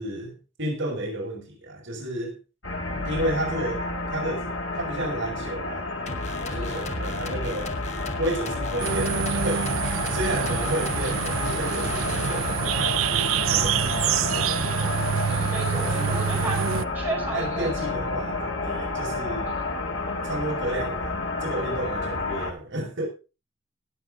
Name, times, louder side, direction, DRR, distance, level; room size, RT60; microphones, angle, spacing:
voice 1, 0.0-2.4 2.9-5.9 6.4-7.8 8.2-9.7 10.1-15.1 15.8-16.3 17.3-19.5 20.2-23.1, right 1 dB, 60° right, 5.9 m, -32 dB
sound 1, 2.6-22.5, left 2 dB, 80° left, 2.6 m, -30 dB
sound 2, 6.1-12.8, left 1 dB, 35° left, 1.2 m, -35 dB
voice 2, 6.5-7.0 10.4-10.7 15.2-16.6 16.9-17.7, right 2 dB, 10° right, 4.9 m, -34 dB
sound 3, 8.8-16.8, right 8 dB, 80° right, 0.5 m, -26 dB
19.5 x 7.7 x 3.8 m
head